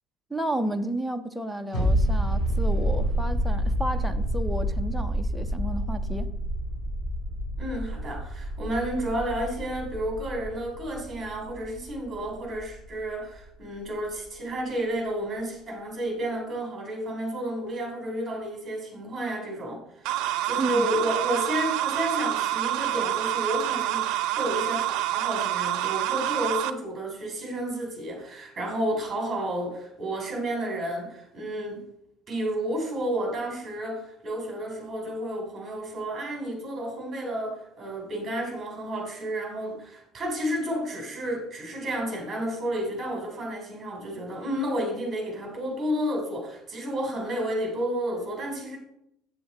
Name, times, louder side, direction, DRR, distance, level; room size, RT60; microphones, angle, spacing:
voice 1, 0.3-6.3 20.6-20.9, right 1 dB, 5° right, 5 dB, 0.5 m, -32 dB
sound 1, 1.7-13.1 13.4-13.5, equal, 25° left, 3.6 m, -28 dB
voice 2, 7.6-24.0 24.4-31.8 32.3-48.8, right 1 dB, 20° right, 0 dB, 3.0 m, -31 dB
sound 2, 20.1-26.7, right 14 dB, 65° right, 0.5 m, -27 dB
7.8 x 7.6 x 4.1 m, 0.74 s
cardioid pair, 160°, 0 cm